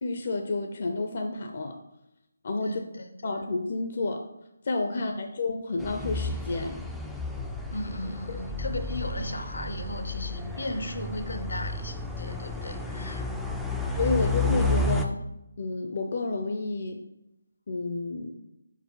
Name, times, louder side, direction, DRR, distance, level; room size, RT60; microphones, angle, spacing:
voice 1, 0.0-1.8 2.4-2.8 3.2-4.2 4.6-6.8 8.3-8.4 13.9-15.2 15.6-17.0 17.7-18.3, left 3 dB, 45° left, 4 dB, 0.6 m, -30 dB
voice 2, 2.6-3.1 4.9-5.2 7.7-13.2, left 1 dB, 70° left, 7 dB, 0.9 m, -36 dB
sound 1, 5.8-15.1, left 2 dB, ahead, 0.4 m, -31 dB
4.6 x 4.1 x 5.6 m, 0.89 s
figure-of-eight pair, 155°, 0 cm